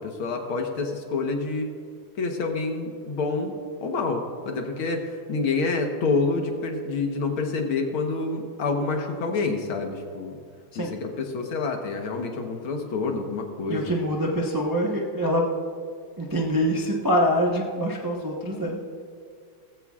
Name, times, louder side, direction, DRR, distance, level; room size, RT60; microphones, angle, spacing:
voice 1, 0.0-1.7 2.2-3.5 3.8-10.4 10.8-13.9, left 3 dB, 70° left, 3 dB, 2.0 m, -27 dB
voice 2, 13.7-15.4 16.2-19.0, equal, 20° right, -2 dB, 0.5 m, -25 dB
18.5 x 15.0 x 2.4 m, 2.2 s
omnidirectional pair, 2.4 m